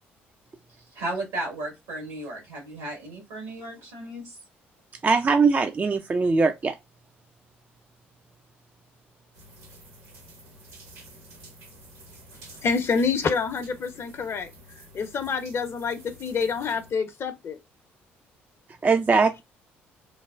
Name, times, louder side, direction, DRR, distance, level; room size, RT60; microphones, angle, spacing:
voice 1, 0.9-4.4, right 1 dB, 80° right, 1.7 m, -34 dB
voice 2, 5.0-6.8 18.8-19.4, right 4 dB, 30° right, 0.4 m, -21 dB
sound 1, 9.3-16.9, right 1 dB, 65° right, 1.0 m, -49 dB
voice 3, 12.6-14.5 14.8-17.6, left 5 dB, 50° left, 0.7 m, -27 dB
3.2 x 2.1 x 2.3 m
hypercardioid pair, 50°, 6 cm